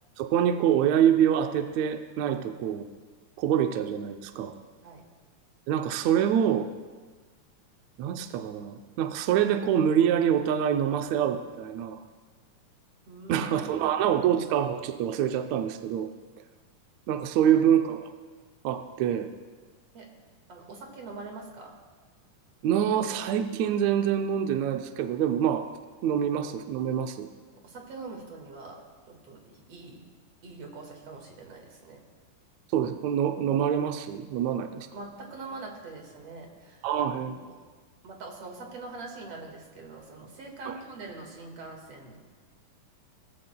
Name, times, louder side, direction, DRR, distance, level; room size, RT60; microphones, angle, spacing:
voice 1, 0.2-2.9 3.4-4.5 5.7-6.7 8.0-12.0 13.3-16.1 17.1-18.0 18.6-19.3 22.6-25.7 26.0-27.3 32.7-34.9 36.8-37.4, right 9 dB, 80° right, 7 dB, 1.6 m, -25 dB
voice 2, 13.1-13.9 17.4-17.6 19.9-20.1 20.5-21.8 27.5-30.0 30.4-32.0 34.8-37.6 38.0-42.2, right 3 dB, 50° right, 1 dB, 2.6 m, -44 dB
18.5 x 14.5 x 2.2 m, 1.4 s
omnidirectional pair, 3.8 m